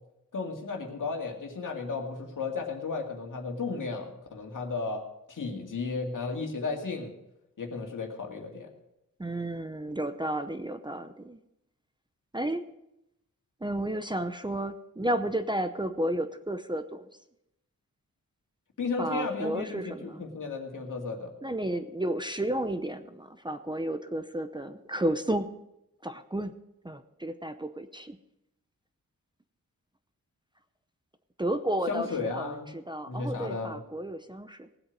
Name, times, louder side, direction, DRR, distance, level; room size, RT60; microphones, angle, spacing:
voice 1, 0.3-5.0 5.3-7.1 7.6-8.7 18.8-21.3 31.9-32.7 33.1-33.8, left 4 dB, 70° left, 2 dB, 2.2 m, -34 dB
voice 2, 9.2-11.4 12.3-12.6 13.6-17.1 19.0-20.3 21.4-25.5 26.0-26.6 26.8-28.2 31.4-34.7, right 1 dB, 15° right, 9 dB, 0.7 m, -32 dB
18.0 x 8.0 x 5.3 m, 0.86 s
wide cardioid pair, 95°, 33 cm